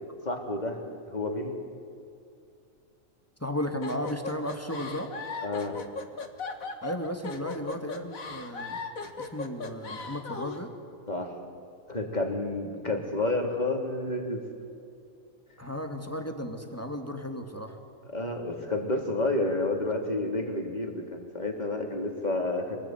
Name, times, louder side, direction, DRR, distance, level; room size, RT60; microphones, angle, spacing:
voice 1, 0.3-0.8 1.1-1.6 5.4-5.8 11.1-11.4 11.9-14.4 18.1-22.8, left 2 dB, 30° left, 2 dB, 3.6 m, -30 dB
voice 2, 3.4-5.1 6.8-8.8 9.2-10.7 15.6-17.8, equal, 10° left, 4 dB, 2.5 m, -34 dB
sound 1, 3.8-10.6, left 4 dB, 80° left, 2.2 m, -37 dB
27.0 x 19.5 x 9.6 m, 2.5 s
omnidirectional pair, 1.4 m